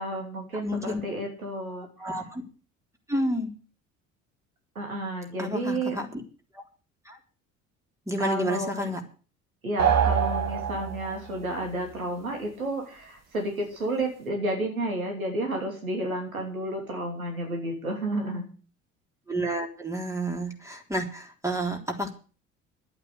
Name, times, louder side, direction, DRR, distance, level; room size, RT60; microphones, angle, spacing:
voice 1, 0.0-2.1 4.7-6.0 8.2-8.9 9.6-18.5, right 1 dB, 85° right, 2 dB, 3.2 m, -31 dB
voice 2, 0.6-1.0 2.0-2.4 3.1-3.5 5.4-6.2 6.5-6.6 7.1-7.2 8.1-9.0 19.3-22.1, equal, 5° right, 3 dB, 3.8 m, -30 dB
sound 1, 9.8-11.3, right 8 dB, 40° right, 2.4 m, -24 dB
11.5 x 8.8 x 8.2 m, 0.38 s
figure-of-eight pair, 60°, 41 cm